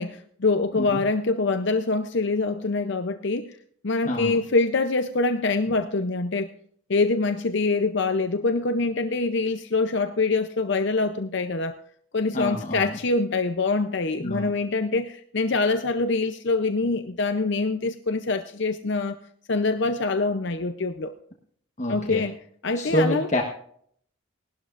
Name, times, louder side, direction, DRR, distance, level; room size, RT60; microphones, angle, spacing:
voice 1, 0.0-3.5 3.8-6.5 6.9-11.8 12.1-19.2 19.5-21.1 21.9-22.3 22.6-23.3, left 3 dB, 55° left, 8 dB, 0.6 m, -25 dB
voice 2, 4.0-4.4 12.3-12.9 14.2-14.5 21.8-22.2 22.8-23.4, equal, 35° left, 1 dB, 1.2 m, -27 dB
19.0 x 12.0 x 2.5 m, 0.62 s
head